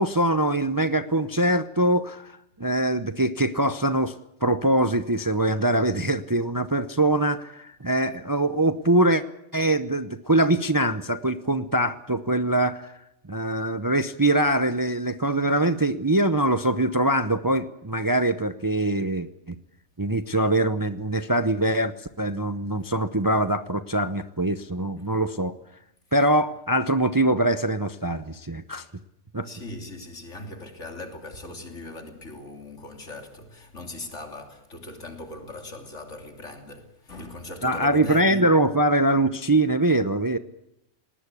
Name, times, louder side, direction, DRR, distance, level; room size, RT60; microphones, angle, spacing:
voice 1, 0.0-2.3 2.6-4.1 4.4-9.2 9.5-12.9 13.3-19.6 20.0-25.5 26.1-28.8 29.3-29.5 37.6-40.4, right 1 dB, 20° right, 0.7 m, -23 dB
voice 2, 29.4-38.5, left 2 dB, 70° left, 3.5 m, -39 dB
20.0 x 19.0 x 8.4 m
omnidirectional pair, 1.3 m